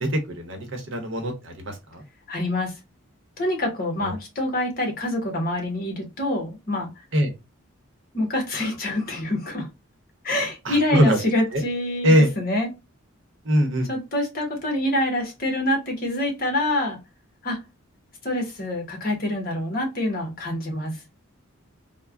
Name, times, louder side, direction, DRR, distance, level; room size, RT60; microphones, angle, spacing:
voice 1, 0.0-2.0 4.0-4.2 7.1-7.3 10.6-11.2 11.5-11.6 12.0-12.3 13.4-13.9, equal, 60° right, 4 dB, 0.8 m, -22 dB
voice 2, 2.3-2.7 3.4-6.9 8.1-9.7 10.2-12.7 13.9-17.0 17.4-17.6 18.2-20.9, left 1 dB, 45° left, 2 dB, 1.0 m, -26 dB
3.2 x 2.1 x 2.3 m, 0.24 s
head